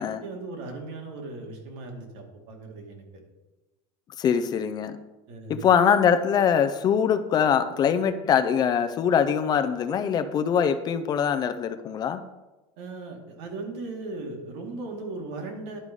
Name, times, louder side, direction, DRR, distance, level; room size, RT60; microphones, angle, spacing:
voice 1, 0.0-3.0 5.3-5.6 12.8-15.8, right 3 dB, 75° right, 2 dB, 2.2 m, -37 dB
voice 2, 4.2-5.0 5.5-12.2, left 7 dB, 30° left, 10 dB, 0.4 m, -23 dB
11.0 x 4.8 x 5.3 m, 1.1 s
cardioid pair, 160°, 14 cm